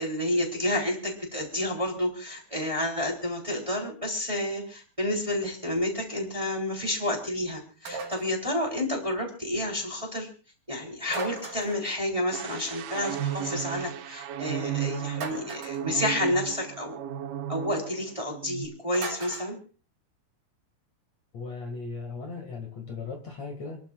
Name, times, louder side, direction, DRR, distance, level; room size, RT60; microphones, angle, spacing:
voice 1, 0.0-10.3 10.7-17.0 17.5-19.6, left 1 dB, 10° right, 0 dB, 2.9 m, -30 dB
sound 1, 7.9-8.4 11.1-11.9 15.1-15.8 18.9-19.5, right 4 dB, 65° right, 3.9 m, -37 dB
sound 2, 12.3-18.0 18.3-18.7, right 10 dB, 90° right, 2.8 m, -34 dB
voice 2, 21.3-23.8, left 4 dB, 50° left, 2 dB, 2.9 m, -37 dB
29.5 x 12.0 x 2.4 m, 0.38 s
omnidirectional pair, 4.2 m